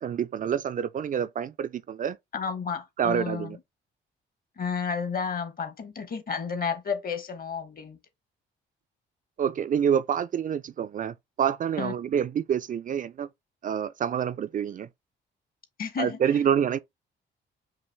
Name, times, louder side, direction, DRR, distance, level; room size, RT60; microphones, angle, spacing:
voice 1, 0.0-2.2 3.0-3.6 9.4-13.3 13.6-14.9 16.0-16.8, right 8 dB, 45° right, 0.4 m, -27 dB
voice 2, 2.3-3.6 4.6-8.0 11.8-11.9 15.8-16.2, left 6 dB, 45° left, 1.1 m, -31 dB
5.4 x 2.5 x 3.4 m
cardioid pair, 90°, 20 cm